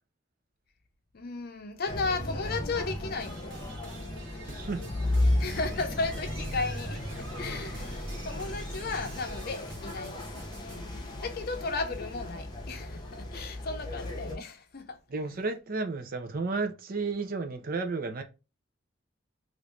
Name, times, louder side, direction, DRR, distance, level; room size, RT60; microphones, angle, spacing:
voice 1, 1.1-3.6 5.4-8.0 8.2-10.3 10.6-15.0, left 3 dB, 55° left, 0.6 m, -35 dB
sound 1, 1.9-14.4, left 1 dB, 20° left, 0.8 m, -34 dB
sound 2, 3.2-10.9, right 2 dB, 70° right, 1.1 m, -48 dB
voice 2, 4.5-4.8 15.1-18.2, right 3 dB, 50° right, 0.6 m, -32 dB
3.0 x 2.6 x 3.2 m
head